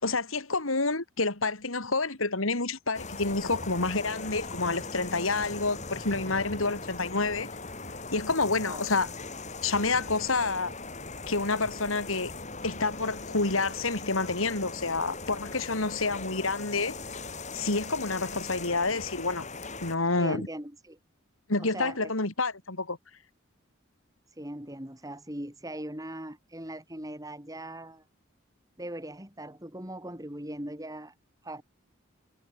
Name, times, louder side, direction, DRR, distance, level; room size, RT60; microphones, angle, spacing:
voice 1, 0.0-7.5 8.1-9.1 9.6-10.7 11.3-12.3 12.6-16.9 17.5-19.5 19.8-20.5 21.5-23.0, left 3 dB, 85° left, 3.4 m, -28 dB
sound 1, 2.9-20.0, left 3 dB, 35° left, 6.6 m, -40 dB
voice 2, 20.2-21.0 21.6-22.1 24.3-28.0 28.8-31.1 31.4-31.6, right 1 dB, 15° right, 3.2 m, -40 dB
head